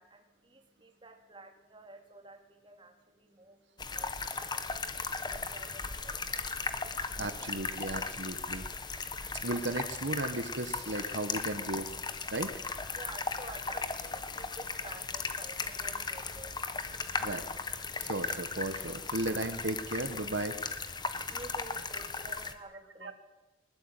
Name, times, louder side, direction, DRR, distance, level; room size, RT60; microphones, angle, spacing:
voice 1, 0.0-7.2 8.5-9.7 12.2-12.3 12.9-17.3 21.3-23.1, right 2 dB, 25° right, 4 dB, 3.0 m, -52 dB
sound 1, 3.8-22.5, left 4 dB, 20° left, 1.4 m, -37 dB
voice 2, 7.2-8.6 9.4-11.9 12.3-12.5 17.2-17.4 18.0-20.6 23.0-23.1, right 2 dB, 65° right, 8 dB, 1.6 m, -35 dB
21.0 x 20.5 x 9.2 m, 1.1 s
head